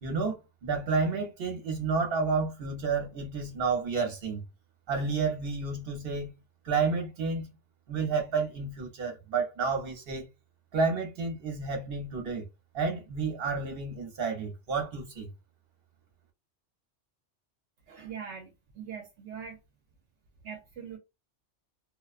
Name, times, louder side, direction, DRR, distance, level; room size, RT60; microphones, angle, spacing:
voice 1, 0.0-4.4 4.9-6.3 6.6-7.5 7.9-10.2 10.7-12.4 12.7-15.3, right 4 dB, 55° right, 1.0 m, -30 dB
voice 2, 17.9-19.6 20.4-21.0, right 7 dB, 75° right, 0.9 m, -42 dB
2.4 x 2.2 x 2.4 m
omnidirectional pair, 1.2 m